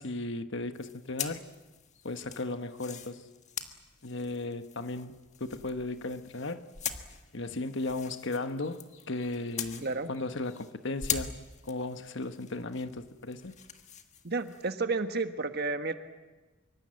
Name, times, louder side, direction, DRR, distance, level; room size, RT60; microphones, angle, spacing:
voice 1, 0.0-1.5 2.0-3.2 4.0-6.7 7.3-11.3 11.6-13.6, left 2 dB, 55° left, 1.3 m, -36 dB
sound 1, 0.7-10.7 11.0-14.7, left 7 dB, 35° left, 1.6 m, -42 dB
voice 2, 14.2-15.9, right 3 dB, 45° right, 1.4 m, -31 dB
25.0 x 24.5 x 7.7 m
head